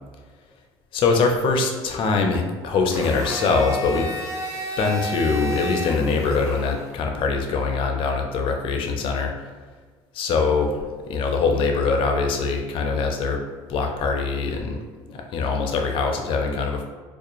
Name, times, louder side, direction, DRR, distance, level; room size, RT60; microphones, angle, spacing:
voice 1, 0.9-4.1 4.8-9.3 10.1-13.4 13.7-14.8 15.1-16.8, left 4 dB, 55° left, 3 dB, 0.4 m, -23 dB
Domestic sounds home sounds, 2.9-6.9, equal, 30° right, 0.6 m, -32 dB
2.4 x 2.1 x 2.9 m, 1.4 s
cardioid pair, 110°, 10 cm